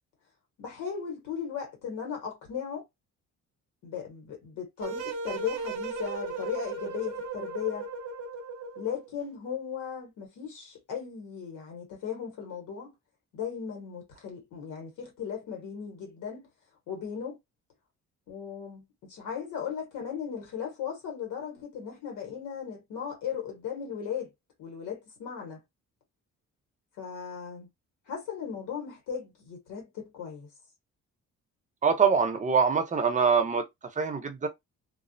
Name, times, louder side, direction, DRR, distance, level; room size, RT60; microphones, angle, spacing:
voice 1, 0.6-2.8 3.8-7.9 8.8-12.9 13.3-16.5 16.9-17.4 18.3-24.3 24.6-25.6 27.0-27.7 28.1-30.5, left 7 dB, 85° left, 1.3 m, -37 dB
sound 1, 4.8-9.1, right 4 dB, 75° right, 0.7 m, -36 dB
voice 2, 31.8-33.6 34.0-34.5, right 5 dB, 25° right, 0.7 m, -24 dB
2.3 x 2.0 x 2.6 m
cardioid pair, 90°, 30 cm